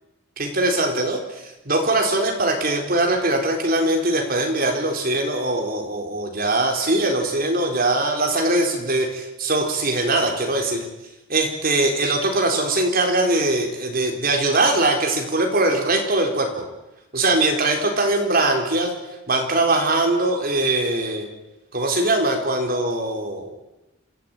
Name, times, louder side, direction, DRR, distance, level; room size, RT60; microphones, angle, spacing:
voice 1, 0.4-10.9 11.3-16.5 17.1-18.9 19.3-21.3 21.7-23.5, right 2 dB, 45° right, 2 dB, 4.3 m, -21 dB
26.5 x 14.5 x 9.1 m, 1.0 s
head